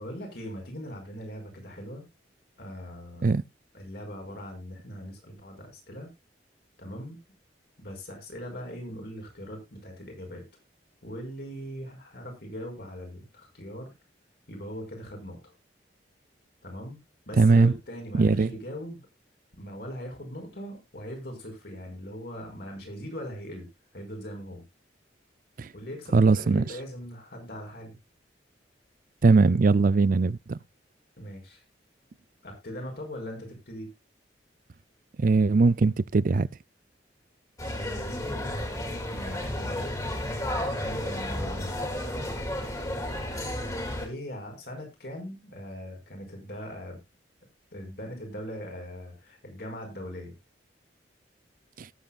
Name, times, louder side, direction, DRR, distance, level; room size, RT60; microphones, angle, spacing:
voice 1, 0.0-2.0 2.6-3.3 3.7-6.1 6.8-7.2 7.8-10.5 11.0-13.9 14.5-15.4 16.6-17.0 17.3-19.0 19.6-23.7 23.9-24.6 25.7-27.9 31.2-31.6 32.4-33.9 39.1-39.9 40.8-41.8 44.0-47.0 47.7-50.3, equal, 60° left, 5.3 m, -40 dB
voice 2, 17.4-17.7 18.1-18.5 25.6-25.7 26.1-26.7 29.2-30.6 35.2-36.5 51.8-51.9, right 3 dB, 50° right, 0.5 m, -20 dB
sound 1, 37.6-44.1, left 1 dB, 20° left, 2.9 m, -32 dB
18.5 x 8.0 x 2.4 m
head